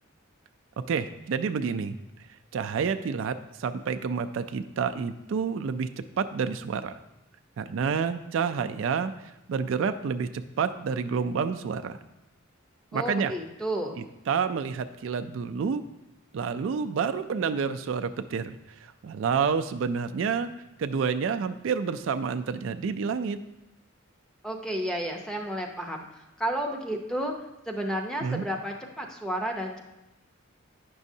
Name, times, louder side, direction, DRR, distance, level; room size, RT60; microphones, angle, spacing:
voice 1, 0.9-2.0 2.5-5.9 6.2-6.9 7.6-9.1 9.5-12.0 12.9-13.3 14.3-15.8 16.3-18.6 18.8-20.5 20.8-23.4 28.2-28.4, right 6 dB, 65° right, 9 dB, 0.3 m, -29 dB
voice 2, 12.9-14.0 24.4-27.3 27.7-29.8, right 1 dB, 5° left, 2 dB, 0.6 m, -32 dB
9.6 x 6.1 x 2.7 m, 0.96 s
head